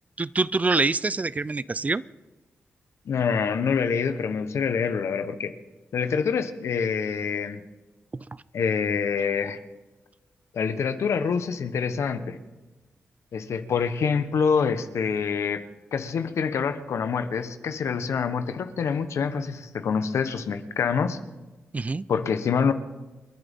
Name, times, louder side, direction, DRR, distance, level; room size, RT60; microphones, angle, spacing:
voice 1, 0.2-2.0 8.1-8.2 21.7-22.1, right 3 dB, 30° right, 19 dB, 0.4 m, -25 dB
voice 2, 3.1-5.5 5.9-7.6 8.5-9.6 10.5-12.4 13.3-15.6 15.9-21.2 22.1-22.7, left 6 dB, 80° left, 10 dB, 1.1 m, -26 dB
29.0 x 11.0 x 3.7 m, 1.2 s
cardioid pair, 60°, 5 cm